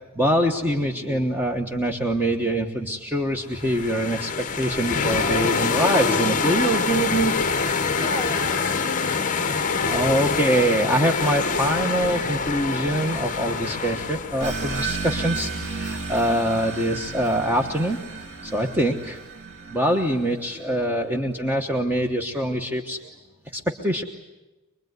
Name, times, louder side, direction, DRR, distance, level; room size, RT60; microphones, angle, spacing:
voice 1, 0.1-7.4 9.8-18.0 18.4-19.2 19.7-23.1 23.5-24.0, right 1 dB, 10° right, 2 dB, 1.2 m, -24 dB
sound 1, 3.5-14.8, left 4 dB, 35° left, 1.0 m, -25 dB
voice 2, 8.0-9.9 18.8-19.1, left 1 dB, 20° left, 5 dB, 3.2 m, -36 dB
sound 2, 14.4-20.7, right 4 dB, 55° right, 3.3 m, -33 dB
25.5 x 21.5 x 9.4 m, 1.1 s
head